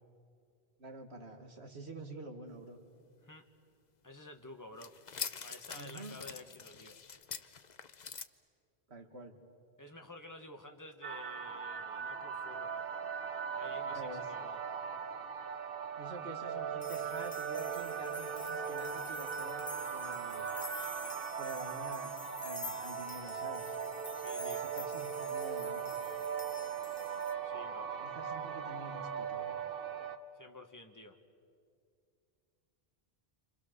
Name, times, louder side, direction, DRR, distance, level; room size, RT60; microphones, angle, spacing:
voice 1, 0.8-2.8 5.7-6.2 8.9-9.3 13.8-14.3 16.0-20.6 21.4-23.8 24.4-25.9 28.0-29.6, right 2 dB, 85° right, 4 dB, 2.3 m, -48 dB
voice 2, 4.0-4.9 5.4-7.0 9.8-12.7 13.5-14.6 24.1-24.7 27.4-27.9 30.3-31.2, left 2 dB, 20° left, 4 dB, 1.6 m, -51 dB
sound 1, 4.8-8.2, left 6 dB, 45° left, 0.8 m, -44 dB
sound 2, 11.0-30.2, right 7 dB, 60° right, 1.2 m, -39 dB
sound 3, 16.8-27.3, left 3 dB, 65° left, 1.7 m, -49 dB
29.5 x 26.0 x 6.9 m, 2.3 s
omnidirectional pair, 1.1 m